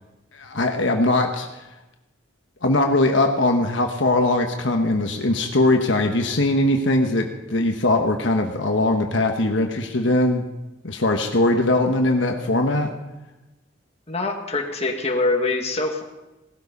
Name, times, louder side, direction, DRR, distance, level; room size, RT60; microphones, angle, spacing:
voice 1, 0.3-1.5 2.6-10.5 10.8-12.9, left 2 dB, 70° left, 3 dB, 1.3 m, -20 dB
voice 2, 14.1-16.0, left 3 dB, 35° left, 2 dB, 2.0 m, -24 dB
18.5 x 13.0 x 5.4 m, 1.0 s
head